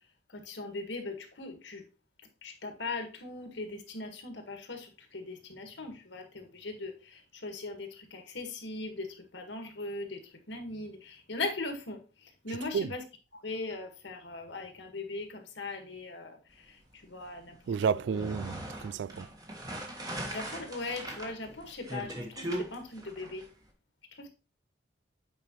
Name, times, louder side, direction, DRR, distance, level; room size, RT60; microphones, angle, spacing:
voice 1, 0.3-1.8 2.4-13.0 13.3-17.8 18.1-18.2 20.3-23.5 24.1-24.3, left 3 dB, 70° left, 1.7 m, -40 dB
voice 2, 17.7-19.3, right 6 dB, 65° right, 0.3 m, -31 dB
sound 1, 17.9-23.5, right 1 dB, 20° right, 1.5 m, -39 dB
8.9 x 5.0 x 3.1 m
head